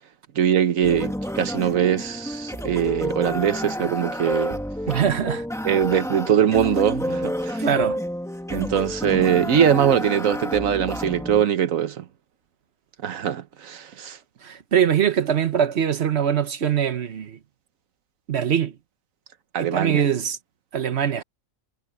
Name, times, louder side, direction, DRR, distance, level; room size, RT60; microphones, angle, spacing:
voice 1, 0.3-4.6 5.6-7.6 8.5-12.0 13.0-14.2 19.5-20.0, right 9 dB, 70° right, 1.3 m, -22 dB
sound 1, 0.8-11.4, equal, ahead, 1.4 m, -29 dB
voice 2, 4.9-5.5 7.6-8.0 14.4-17.4 18.3-18.7 19.6-20.4 20.7-21.2, right 8 dB, 50° right, 1.2 m, -22 dB
omnidirectional pair, 1.5 m